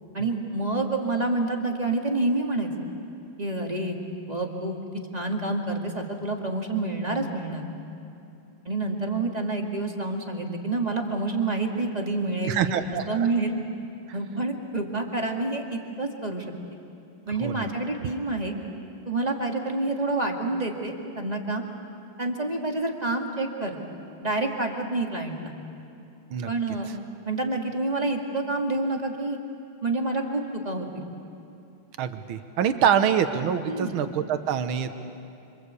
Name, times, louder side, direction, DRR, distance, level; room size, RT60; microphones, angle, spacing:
voice 1, 0.1-2.7 3.4-4.0 4.3-4.8 5.1-7.7 8.6-12.8 13.1-13.5 14.1-16.4 17.3-18.5 19.1-21.6 22.2-23.8 24.2-25.5 26.5-26.9 27.3-29.4 29.8-31.0 33.7-34.0, right 2 dB, 20° right, 2 dB, 2.2 m, -28 dB
voice 2, 12.5-13.3 17.4-17.7 26.3-26.5 32.0-35.0, right 8 dB, 85° right, 9 dB, 1.9 m, -25 dB
26.5 x 26.0 x 8.3 m, 2.7 s
omnidirectional pair, 2.2 m